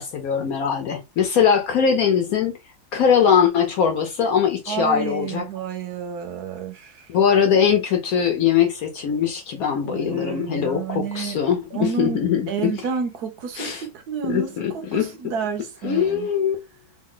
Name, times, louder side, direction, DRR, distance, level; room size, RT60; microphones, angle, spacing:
voice 1, 0.0-2.6 2.9-5.4 7.1-12.7 13.6-13.8 14.3-15.1 15.8-16.6, left 7 dB, 75° left, 0.8 m, -21 dB
voice 2, 4.7-7.1 9.8-11.4 11.7-16.3, right 6 dB, 65° right, 1.1 m, -30 dB
3.5 x 2.2 x 3.7 m
omnidirectional pair, 2.2 m